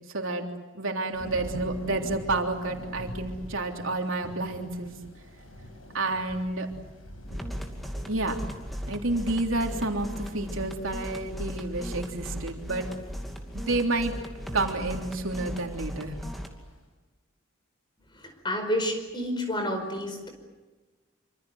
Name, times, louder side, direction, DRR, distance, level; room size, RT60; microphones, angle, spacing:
voice 1, 0.1-0.4 0.7-4.9 5.9-6.7 8.1-8.4 8.9-12.9 13.5-14.1 14.5-16.2, right 2 dB, 75° right, 2 dB, 3.4 m, -29 dB
Thunder / Rain, 1.1-16.7, equal, 80° left, 7.7 m, -46 dB
sound 1, 7.3-16.5, equal, ahead, 2.6 m, -37 dB
voice 2, 18.2-20.3, equal, 25° left, 5 dB, 5.0 m, -30 dB
26.5 x 26.5 x 7.9 m, 1.2 s
head